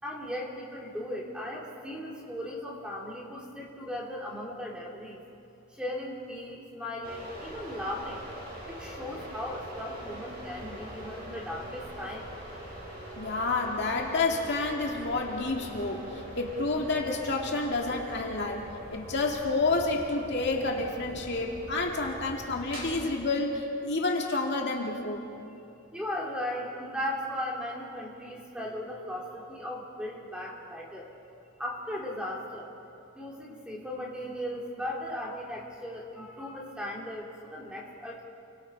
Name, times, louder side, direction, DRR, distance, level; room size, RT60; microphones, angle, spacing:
voice 1, 0.0-5.2 5.8-8.2 8.7-12.2 25.9-31.0 31.6-32.7 33.2-38.2, left 1 dB, 5° right, -3 dB, 3.2 m, -37 dB
sound 1, 7.0-23.0, right 1 dB, 45° right, 6.7 m, -43 dB
voice 2, 13.2-18.6 18.9-25.2, left 3 dB, 50° left, 0 dB, 2.2 m, -29 dB
29.5 x 24.0 x 4.7 m, 2.8 s
head